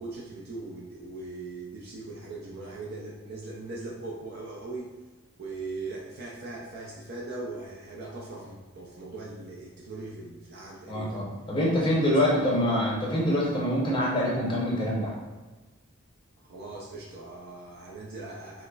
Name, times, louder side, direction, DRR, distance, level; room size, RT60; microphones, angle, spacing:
voice 1, 0.0-4.9 5.4-11.2 11.8-12.2 12.6-12.8 16.4-18.6, right 3 dB, 50° right, -4 dB, 0.4 m, -40 dB
voice 2, 10.9-15.2, equal, 25° left, -5 dB, 0.7 m, -25 dB
4.7 x 2.0 x 2.3 m, 1.2 s
head